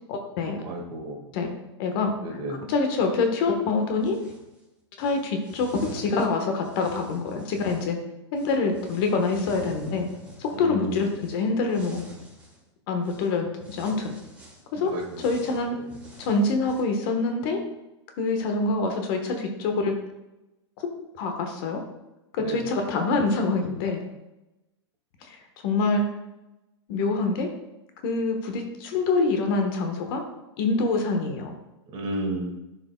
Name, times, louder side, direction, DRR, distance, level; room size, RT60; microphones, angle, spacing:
voice 1, 0.1-0.6 1.3-1.5 1.8-2.4 2.7-4.2 5.0-8.0 8.3-10.1 10.4-12.0 12.9-14.1 14.7-15.8 16.2-17.6 18.2-20.0 21.2-21.8 22.3-24.0 25.2-26.1 26.9-27.5 28.0-30.2 30.6-31.6, left 3 dB, 50° left, 4 dB, 1.2 m, -25 dB
voice 2, 0.6-1.3 2.2-2.6 10.5-11.0 14.8-15.3 22.4-22.7 31.9-32.5, right 1 dB, 35° right, 1 dB, 1.7 m, -32 dB
sound 1, 4.0-4.5 5.0-7.9 8.3-12.6 13.0-13.3 13.6-16.8, equal, 10° right, 2.0 m, -47 dB
11.0 x 4.9 x 2.2 m, 0.98 s
hypercardioid pair, 130°, 15 cm